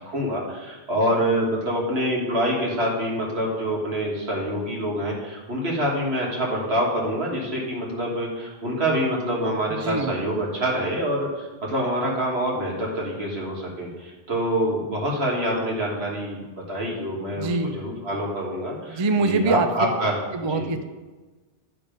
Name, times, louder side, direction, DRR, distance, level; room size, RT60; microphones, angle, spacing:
voice 1, 0.0-16.4 16.7-20.7, equal, 85° right, -3 dB, 2.1 m, -26 dB
voice 2, 9.7-10.1 17.4-17.7 18.9-19.7 20.3-20.8, right 3 dB, 40° right, 8 dB, 0.4 m, -24 dB
10.5 x 3.9 x 5.1 m, 1.3 s
omnidirectional pair, 1.0 m